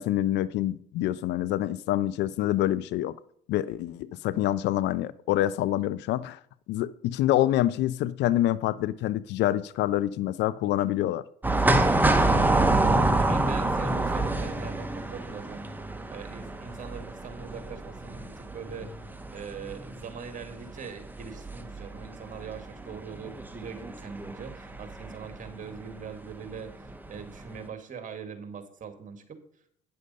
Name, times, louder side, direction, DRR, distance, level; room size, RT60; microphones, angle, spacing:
voice 1, 0.0-3.2 3.5-6.4 6.7-11.2, left 13 dB, 65° left, 0.5 m, -26 dB
sound 1, 11.4-25.5 25.8-25.9 26.9-27.2 27.5-27.6, right 2 dB, 10° right, 1.2 m, -27 dB
voice 2, 13.1-15.7 16.1-18.9 19.3-29.4, right 6 dB, 40° right, 2.0 m, -42 dB
9.5 x 6.5 x 5.5 m
hypercardioid pair, 70°, 20 cm